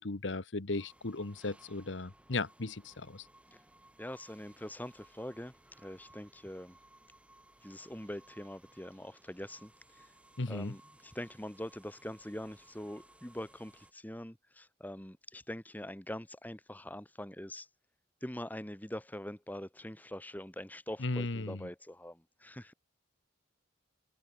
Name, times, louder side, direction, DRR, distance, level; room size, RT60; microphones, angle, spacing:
voice 1, 0.0-3.3 10.4-10.8 21.0-21.7, left 3 dB, 75° left, 1.2 m, -36 dB
sound 1, 0.7-13.9, right 1 dB, 5° right, 6.1 m, -61 dB
voice 2, 4.0-6.8 7.6-9.7 10.0-10.1 10.5-17.7 18.2-22.7, left 1 dB, 10° left, 1.6 m, -44 dB
head